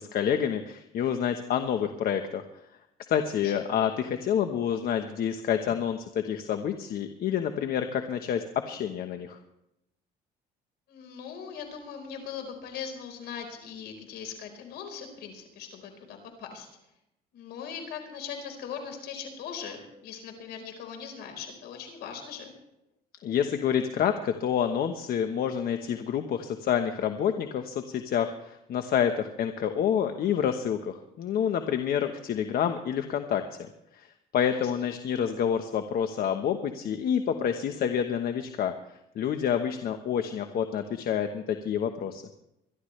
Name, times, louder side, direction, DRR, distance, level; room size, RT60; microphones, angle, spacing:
voice 1, 0.0-2.4 3.1-9.4 23.2-33.7 33.9-38.7 39.1-42.2, left 8 dB, 60° left, 7 dB, 1.2 m, -28 dB
voice 2, 10.9-16.7 17.3-22.5 34.5-34.9, left 7 dB, 80° left, 5 dB, 4.4 m, -40 dB
25.0 x 12.0 x 3.3 m, 0.85 s
cardioid pair, 110°, 17 cm